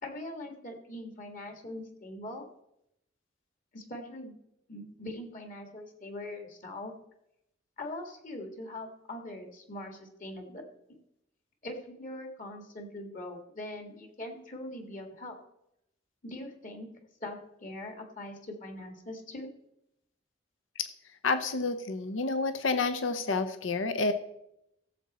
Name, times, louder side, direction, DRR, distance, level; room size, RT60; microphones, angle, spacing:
voice 1, 0.0-2.5 3.7-4.3 4.7-6.9 7.8-10.6 11.6-15.4 16.2-16.9 17.2-19.5, left 1 dB, 45° left, 4 dB, 1.8 m, -42 dB
voice 2, 21.2-24.1, left 3 dB, 80° left, 10 dB, 0.8 m, -29 dB
16.5 x 7.5 x 4.2 m, 0.81 s
head